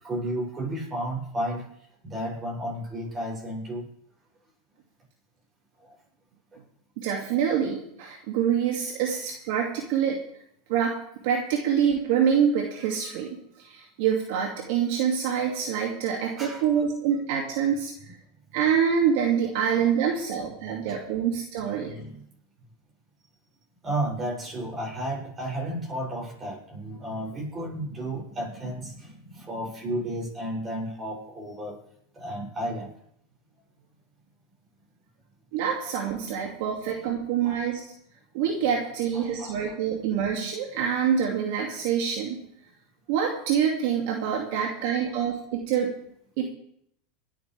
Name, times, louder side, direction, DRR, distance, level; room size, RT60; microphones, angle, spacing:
voice 1, 0.0-1.7 2.0-3.8 16.4-16.8 20.9-21.0 21.6-22.2 23.8-31.8 32.2-32.9 37.4-37.6 39.1-39.7, right 1 dB, 25° right, -2 dB, 7.2 m, -33 dB
voice 2, 7.0-10.2 10.7-11.0 11.2-13.3 13.6-17.9 18.5-22.0 35.5-37.8 38.3-42.4 43.1-45.9 46.4-46.5, right 8 dB, 65° right, 0 dB, 2.4 m, -26 dB
25.0 x 9.3 x 3.5 m, 0.71 s
supercardioid pair, 115°, 0 cm